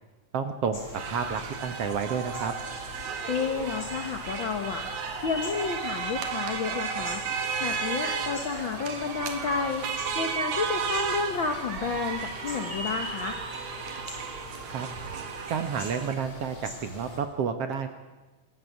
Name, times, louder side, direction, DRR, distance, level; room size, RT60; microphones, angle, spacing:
voice 1, 0.3-0.8 1.1-2.5 14.7-14.9 15.5-18.0, right 6 dB, 60° right, 8 dB, 1.9 m, -30 dB
sound 1, 0.7-17.2, left 1 dB, 30° left, 5.3 m, -42 dB
sound 2, 0.9-16.1, right 6 dB, 80° right, 3.4 m, -34 dB
voice 2, 3.3-4.8 5.2-7.2 7.6-9.9 10.1-13.4, left 5 dB, 60° left, 5 dB, 1.3 m, -31 dB
26.5 x 14.5 x 7.2 m, 1.2 s
omnidirectional pair, 3.7 m